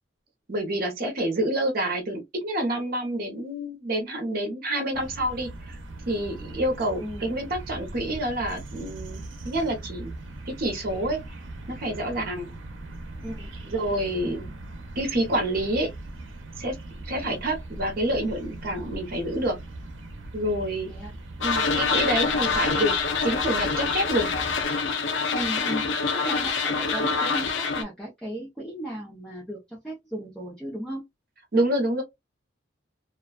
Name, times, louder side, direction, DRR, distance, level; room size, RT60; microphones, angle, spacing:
voice 1, 0.5-5.8 6.1-10.1 10.5-11.2 11.7-12.5 13.6-14.4 15.0-15.9 16.6-16.8 17.0-19.6 20.3-20.9 21.4-22.9 23.2-24.3 31.5-32.0, right 1 dB, 50° right, 0.8 m, -27 dB
sound 1, 4.9-24.7, right 2 dB, 80° right, 0.6 m, -40 dB
voice 2, 7.0-7.3 13.2-13.5 14.3-14.5 20.9-21.1 22.2-22.6 25.3-31.1, right 1 dB, 5° left, 0.7 m, -36 dB
sound 2, 21.4-27.8, left 4 dB, 70° left, 0.5 m, -25 dB
2.5 x 2.2 x 2.3 m
head